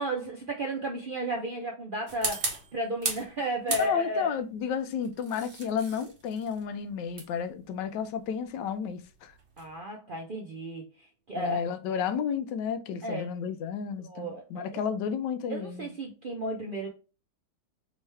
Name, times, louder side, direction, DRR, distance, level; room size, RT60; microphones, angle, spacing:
voice 1, 0.0-4.4 9.6-11.6 13.0-13.2 14.0-14.8 15.5-16.9, right 1 dB, 75° right, 0.4 m, -33 dB
sound 1, 2.1-3.3 3.7-4.3 5.0-9.8, right 3 dB, 45° right, 1.2 m, -36 dB
voice 2, 3.8-9.3 11.3-15.9, left 7 dB, 85° left, 1.3 m, -32 dB
3.6 x 3.2 x 3.2 m
omnidirectional pair, 1.9 m